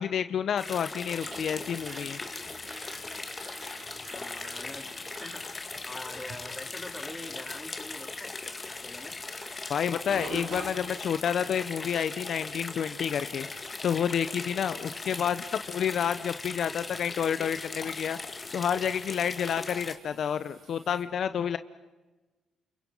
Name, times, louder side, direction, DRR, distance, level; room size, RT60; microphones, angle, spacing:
voice 1, 0.0-2.2 9.7-13.5 13.8-18.2 18.5-21.6, left 8 dB, 60° left, 12 dB, 0.8 m, -29 dB
sound 1, 0.6-19.9, left 3 dB, 25° left, 2.4 m, -39 dB
sound 2, 1.2-21.0, right 3 dB, 60° right, 6.0 m, -49 dB
voice 2, 4.1-8.4 8.7-9.2, left 1 dB, 10° left, 3 dB, 4.3 m, -44 dB
30.0 x 27.5 x 5.6 m, 1.2 s
cardioid pair, 90°, 0 cm